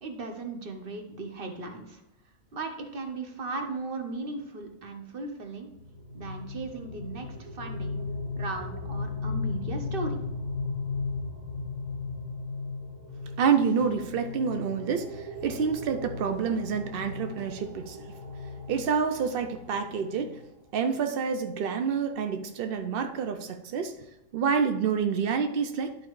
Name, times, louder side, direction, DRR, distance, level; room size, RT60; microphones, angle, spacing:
voice 1, 0.0-2.0 2.5-5.7 6.1-8.0 8.4-10.2, right 3 dB, 40° right, 4 dB, 1.1 m, -37 dB
sound 1, 5.7-20.4, left 3 dB, 25° right, 2.0 m, -36 dB
voice 2, 13.4-18.1 18.7-20.4 20.7-23.9 24.3-26.0, right 6 dB, 70° right, 7 dB, 0.5 m, -28 dB
11.5 x 4.5 x 3.1 m, 0.93 s
omnidirectional pair, 1.6 m